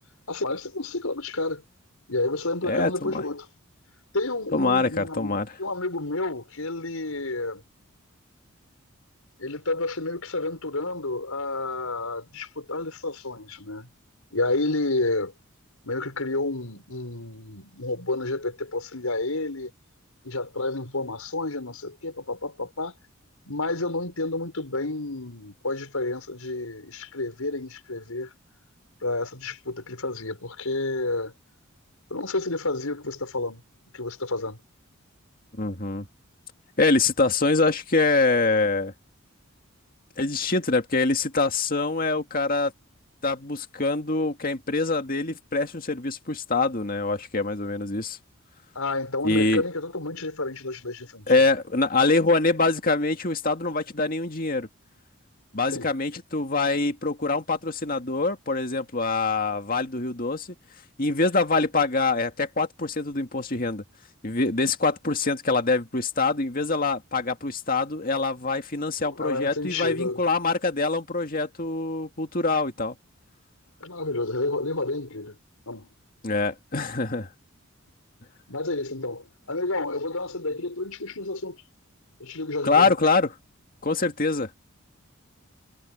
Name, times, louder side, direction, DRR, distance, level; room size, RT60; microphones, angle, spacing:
voice 1, 0.3-1.6 2.1-3.5 4.1-7.6 9.4-13.9 14.3-15.3 15.8-19.7 20.2-23.0 23.4-28.3 29.0-31.3 32.1-33.6 33.9-34.6 48.7-51.3 55.7-55.9 69.0-70.2 73.8-75.3 75.7-75.9 78.5-81.6 82.2-82.9, left 2 dB, 90° left, 5.8 m, -30 dB
voice 2, 2.7-3.2 4.5-5.5 35.5-36.1 36.8-38.9 40.2-42.7 43.2-48.2 49.2-49.6 51.3-54.7 55.5-60.5 61.0-63.8 64.2-73.0 76.2-77.3 82.6-83.3 83.8-84.5, left 3 dB, 40° left, 2.2 m, -24 dB
head